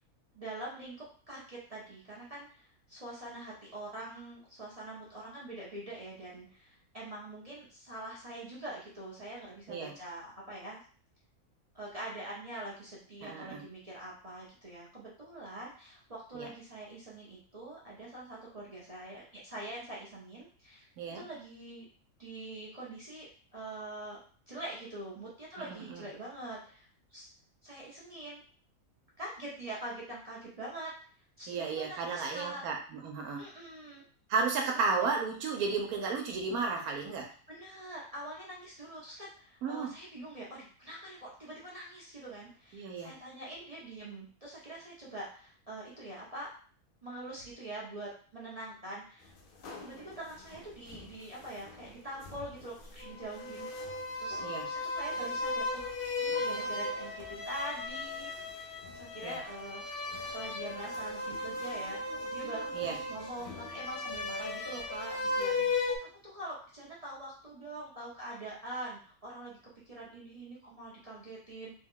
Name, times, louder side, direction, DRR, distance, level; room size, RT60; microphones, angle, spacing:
voice 1, 0.3-10.8 11.7-20.9 21.1-21.9 22.2-23.3 23.5-24.2 24.5-27.3 27.6-28.4 29.2-30.9 31.4-32.6 33.4-34.0 37.5-46.5 47.0-49.3 49.8-53.7 54.2-54.4 54.6-59.8 60.2-62.0 62.3-69.6 69.9-71.7, right 1 dB, 35° right, -6 dB, 0.7 m, -44 dB
voice 2, 13.2-13.6 16.3-16.5 21.0-21.2 25.6-26.0 31.5-33.4 34.3-37.3 39.6-39.9 42.7-43.1 54.4-54.7 59.2-59.4 62.7-63.0, right 4 dB, 85° right, 2 dB, 1.1 m, -33 dB
sound 1, 49.4-51.9 52.2-66.0, left 3 dB, 60° left, 0.6 m, -36 dB
3.3 x 2.3 x 3.6 m, 0.43 s
omnidirectional pair, 1.5 m